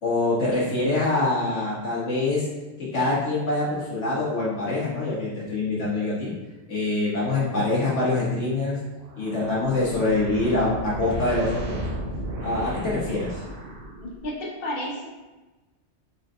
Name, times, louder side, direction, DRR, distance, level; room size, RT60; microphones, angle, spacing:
voice 1, 0.0-2.5 2.9-6.3 6.7-8.8 9.2-11.8 12.4-13.4, left 2 dB, 90° left, -7 dB, 2.0 m, -25 dB
sound 1, 9.0-14.4, right 1 dB, 55° right, 0.8 m, -35 dB
voice 2, 14.0-15.1, left 1 dB, 55° left, -5 dB, 1.4 m, -32 dB
4.8 x 4.1 x 2.7 m, 1.2 s
omnidirectional pair, 1.2 m